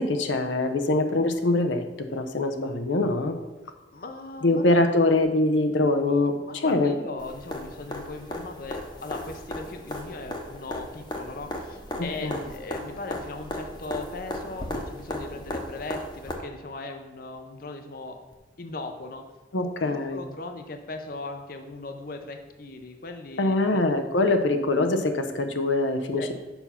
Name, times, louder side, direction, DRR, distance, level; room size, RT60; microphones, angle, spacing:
voice 1, 0.0-3.3 4.4-6.9 12.0-12.4 19.5-20.2 23.4-26.3, left 2 dB, 90° left, 7 dB, 0.7 m, -23 dB
voice 2, 3.9-4.8 6.5-18.2 18.6-19.2 19.8-23.8 24.2-24.3 26.2-26.3, left 3 dB, 50° left, 5 dB, 0.6 m, -38 dB
sound 1, 7.2-16.3 18.3-18.4, left 1 dB, 25° left, 0.9 m, -36 dB
7.0 x 5.6 x 5.7 m, 1.1 s
head